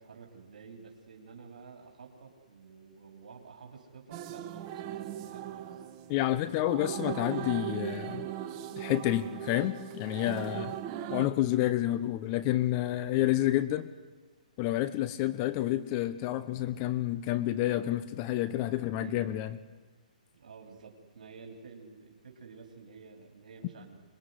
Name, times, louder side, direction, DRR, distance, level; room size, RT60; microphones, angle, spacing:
voice 1, 0.0-5.8 18.9-19.3 20.3-24.0, right 5 dB, 70° right, 1 dB, 3.9 m, -50 dB
sound 1, 4.1-11.3, right 11 dB, 30° right, 1.3 m, -39 dB
voice 2, 6.1-8.3 8.8-10.8 11.1-13.9 14.6-19.6, left 14 dB, 30° left, 14 dB, 0.9 m, -29 dB
25.5 x 21.5 x 9.7 m, 1.4 s
hypercardioid pair, 140°, 4 cm